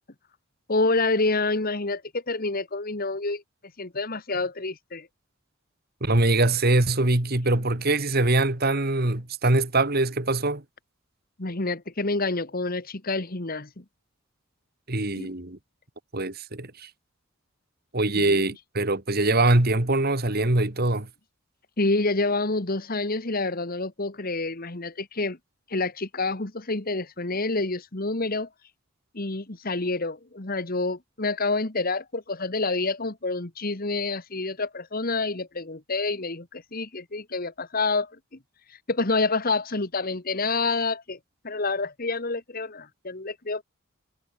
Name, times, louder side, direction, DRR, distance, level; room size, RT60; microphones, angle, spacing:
voice 1, 0.7-3.4 3.8-5.1 11.4-13.8 15.2-15.3 18.1-18.5 21.8-25.4 25.7-28.5 29.1-38.1 38.9-41.2 41.4-43.6, left 3 dB, 45° left, 1.7 m, -28 dB
voice 2, 6.0-10.6 14.9-15.6 16.1-16.9 17.9-21.1, right 2 dB, 50° right, 2.3 m, -23 dB
head